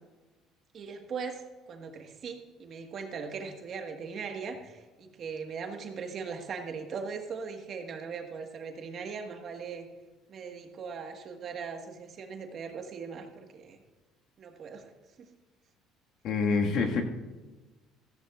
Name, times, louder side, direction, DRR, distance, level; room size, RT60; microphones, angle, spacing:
voice 1, 0.7-9.9 10.3-13.8 14.4-14.9 15.2-15.3, right 5 dB, 45° right, 4 dB, 1.5 m, -39 dB
voice 2, 16.2-17.0, left 4 dB, 60° left, 2 dB, 1.7 m, -26 dB
15.0 x 14.5 x 2.4 m, 1.2 s
cardioid pair, 125°, 0 cm